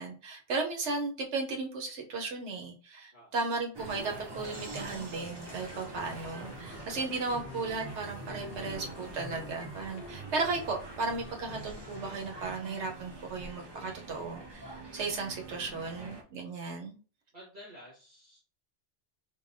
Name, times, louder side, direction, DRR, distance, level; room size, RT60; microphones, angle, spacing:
voice 1, 0.0-17.0, right 3 dB, 80° right, 2 dB, 1.1 m, -35 dB
sound 1, 3.7-16.2, right 2 dB, 30° right, 0.5 m, -44 dB
sound 2, 4.4-12.5, left 5 dB, 60° left, 0.6 m, -52 dB
voice 2, 17.3-18.4, equal, 45° right, -8 dB, 1.8 m, -51 dB
4.6 x 2.2 x 2.6 m, 0.38 s
omnidirectional pair, 1.2 m